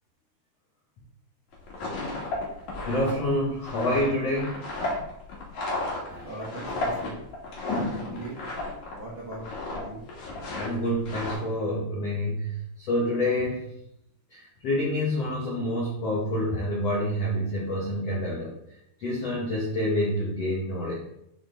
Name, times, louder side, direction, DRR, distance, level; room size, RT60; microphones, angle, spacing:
sound 1, 1.5-9.0 9.3-9.8 10.1-11.4, left 2 dB, 50° left, 2.8 m, -33 dB
voice 1, 2.9-4.6 6.1-6.3 7.6-8.2 10.5-13.6 14.3-18.5 19.0-21.0, left 1 dB, 85° left, -5 dB, 1.4 m, -28 dB
voice 2, 6.2-7.2 7.7-8.3 8.9-9.5 9.7-10.0, right 2 dB, 80° right, -7 dB, 1.0 m, -39 dB
11.0 x 4.3 x 3.5 m, 0.78 s
omnidirectional pair, 5.3 m